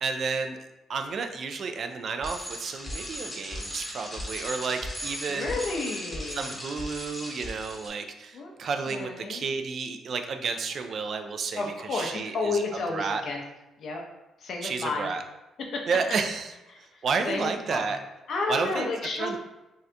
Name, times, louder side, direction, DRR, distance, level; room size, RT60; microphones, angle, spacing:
voice 1, 0.0-0.6 0.9-5.6 6.3-12.6 12.9-13.2 14.6-15.2 15.9-16.5 16.8-18.0 18.5-18.9 19.2-19.4, right 5 dB, 55° right, 6 dB, 0.3 m, -31 dB
Bicycle, 2.2-7.9, equal, 15° left, 0.8 m, -37 dB
voice 2, 5.3-6.5 8.3-8.5 8.9-9.5 11.6-13.4 13.8-14.0 14.4-15.1 16.9-17.9 18.3-19.4, left 3 dB, 60° left, 1 dB, 0.6 m, -31 dB
2.7 x 2.4 x 3.3 m, 0.99 s
cardioid pair, 90°, 0 cm